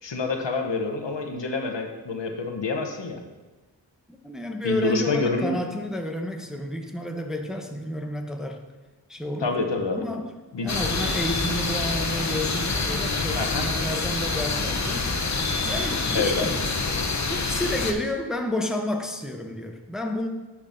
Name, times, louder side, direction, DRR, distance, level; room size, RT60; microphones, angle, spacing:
voice 1, 0.0-3.2 4.6-5.6 9.4-10.0 10.5-10.7 13.1-13.7 16.1-16.5, left 3 dB, 75° left, 4 dB, 0.8 m, -27 dB
voice 2, 4.1-8.7 9.1-9.6 9.9-10.3 10.6-15.1 15.6-16.6 17.3-20.3, left 1 dB, ahead, 4 dB, 0.6 m, -30 dB
sound 1, 10.7-17.9, left 3 dB, 40° left, 0.7 m, -26 dB
10.0 x 5.8 x 2.6 m, 1.2 s
wide cardioid pair, 55°, 44 cm